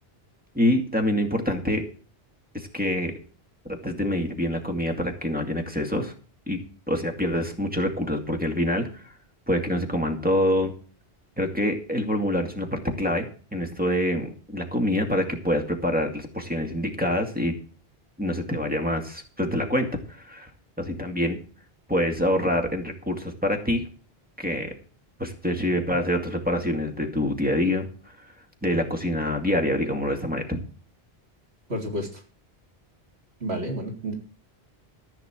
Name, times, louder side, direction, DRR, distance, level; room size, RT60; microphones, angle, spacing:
voice 1, 0.5-1.8 2.5-3.1 3.8-6.1 6.5-6.6 6.9-8.9 9.5-10.7 11.4-13.3 13.5-17.6 18.2-19.9 20.2-20.5 20.8-21.4 21.9-23.8 24.4-24.7 25.2-27.9 28.6-30.6, left 1 dB, 10° right, 3 dB, 2.3 m, -26 dB
voice 2, 31.7-32.2 33.4-34.1, equal, 80° right, 1 dB, 3.9 m, -31 dB
14.0 x 6.0 x 7.5 m, 0.40 s
omnidirectional pair, 1.1 m